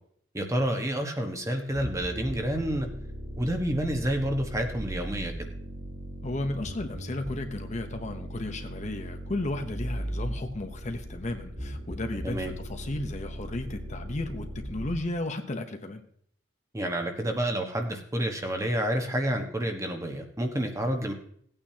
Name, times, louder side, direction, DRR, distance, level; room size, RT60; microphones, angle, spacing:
voice 1, 0.3-2.9 3.4-5.3 12.2-12.6 16.7-21.1, right 1 dB, 15° right, 4 dB, 1.2 m, -29 dB
sound 1, 1.7-15.0, right 1 dB, 80° right, 3.2 m, -38 dB
voice 2, 6.2-16.0, left 2 dB, 40° left, 6 dB, 0.9 m, -34 dB
17.5 x 8.9 x 2.8 m, 0.63 s
head